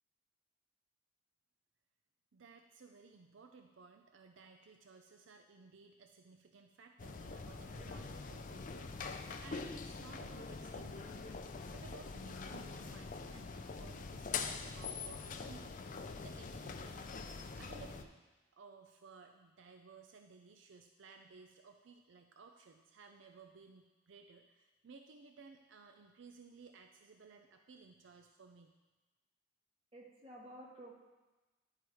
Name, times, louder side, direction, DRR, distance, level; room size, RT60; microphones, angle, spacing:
voice 1, 2.3-17.1 17.6-18.3 18.5-28.7, right 4 dB, 70° right, 5 dB, 0.5 m, -58 dB
sound 1, 7.0-18.0, left 4 dB, 40° left, 0.4 m, -44 dB
voice 2, 29.9-30.9, right 1 dB, 30° right, -2 dB, 1.4 m, -52 dB
10.5 x 4.6 x 4.7 m, 1.2 s
head